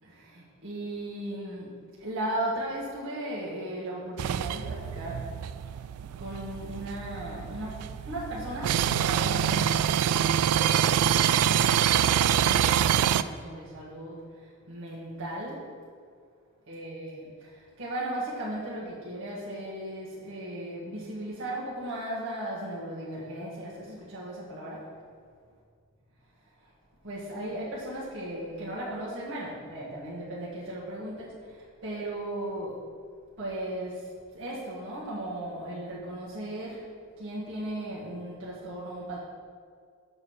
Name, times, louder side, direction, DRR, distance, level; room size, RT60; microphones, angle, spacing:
voice 1, 0.0-1.7 2.0-5.3 6.2-7.8 8.0-14.2 14.7-15.6 16.7-17.5 17.8-24.8 27.0-31.3 31.8-32.8 33.4-34.0 34.3-36.8 37.2-39.2, right 1 dB, 60° right, -9 dB, 1.8 m, -36 dB
Jack Hammer, 4.2-13.2, right 9 dB, 90° right, 0.3 m, -25 dB
7.6 x 4.5 x 6.4 m, 2.1 s
head